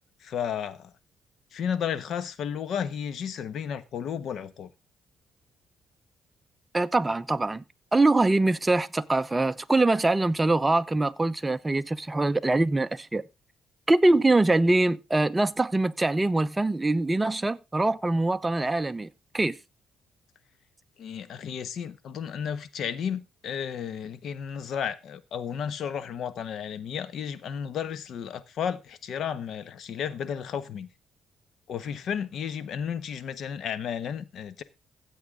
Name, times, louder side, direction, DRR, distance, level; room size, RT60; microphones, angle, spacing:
voice 1, 0.2-0.9 1.5-4.7 21.0-30.9 31.7-34.6, left 8 dB, 70° left, 1.2 m, -33 dB
voice 2, 6.7-7.6 7.9-13.2 13.9-19.1 19.3-19.6, right 2 dB, 15° right, 0.7 m, -23 dB
16.0 x 8.0 x 3.8 m
cardioid pair, 90°, 0 cm